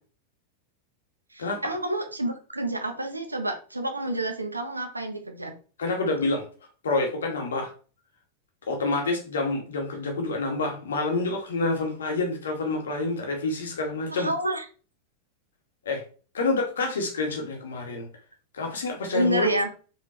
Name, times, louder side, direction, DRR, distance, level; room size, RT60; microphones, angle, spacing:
voice 1, 1.3-5.6 14.1-14.6 19.1-19.7, right 1 dB, 85° right, 6 dB, 1.2 m, -29 dB
voice 2, 5.8-6.5 6.8-7.7 8.7-14.3 15.9-16.0 16.3-18.1 18.5-19.5, left 3 dB, 65° left, 2 dB, 2.1 m, -27 dB
5.3 x 4.9 x 4.5 m, 0.39 s
figure-of-eight pair, 90°, 0 cm